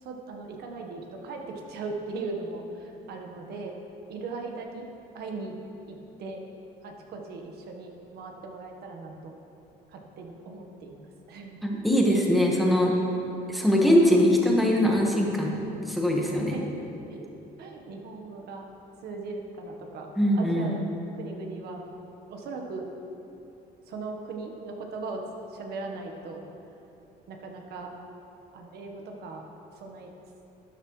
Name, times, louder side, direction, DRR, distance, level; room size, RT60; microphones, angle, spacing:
voice 1, 0.0-3.7 4.1-4.9 5.1-5.6 5.9-6.4 6.8-9.3 9.9-11.6 16.3-18.6 19.0-20.1 20.3-20.8 21.2-21.8 22.3-22.9 23.9-25.2 25.5-26.4 27.3-27.9 28.5-29.4 29.8-30.1, right 3 dB, 70° right, 2 dB, 1.4 m, -38 dB
voice 2, 11.6-12.9 13.5-16.6 20.2-20.8, equal, ahead, -2 dB, 1.5 m, -22 dB
12.5 x 9.2 x 3.3 m, 2.8 s
cardioid pair, 110°, 17 cm